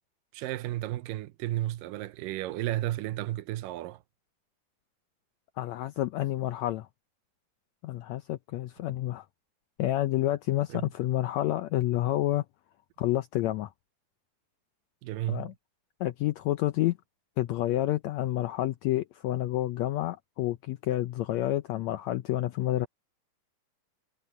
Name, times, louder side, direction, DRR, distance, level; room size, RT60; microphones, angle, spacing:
voice 1, 0.3-4.0 10.7-10.9 15.0-15.5, right 15 dB, 90° right, 2.4 m, -33 dB
voice 2, 5.6-6.9 7.8-9.3 9.8-12.4 13.0-13.7 15.3-15.5 16.0-17.0 17.4-22.9, left 14 dB, 80° left, 1.6 m, -29 dB
omnidirectional pair, 3.8 m